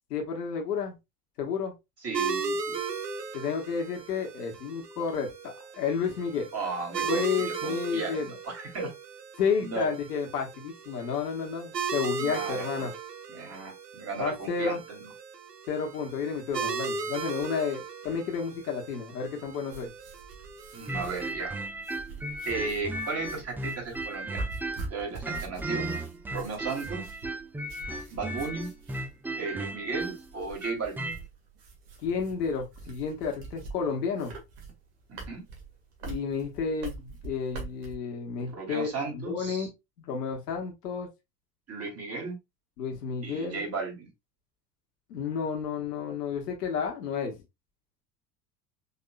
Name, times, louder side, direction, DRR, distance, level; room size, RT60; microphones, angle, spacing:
voice 1, 0.1-1.0 1.4-1.7 3.3-6.5 7.0-8.3 9.4-12.9 14.2-14.8 15.7-19.9 32.0-34.3 36.0-39.7 40.0-41.1 42.8-43.6 45.1-47.3, left 6 dB, 75° left, 1.3 m, -31 dB
voice 2, 2.0-2.8 6.5-8.9 9.6-10.0 12.2-12.9 13.3-15.1 20.7-21.6 22.4-24.4 24.9-25.9 26.3-27.1 28.1-28.7 29.4-31.1 35.1-35.4 38.5-39.7 41.7-42.4 43.2-44.1, right 4 dB, 30° right, 2.7 m, -35 dB
sound 1, 2.1-21.3, right 5 dB, 90° right, 0.8 m, -37 dB
sound 2, 19.7-38.0, right 3 dB, 65° right, 1.9 m, -44 dB
sound 3, 20.9-24.9 25.2-31.2, right 1 dB, 5° right, 0.3 m, -35 dB
5.4 x 3.5 x 2.2 m
figure-of-eight pair, 75°, 48 cm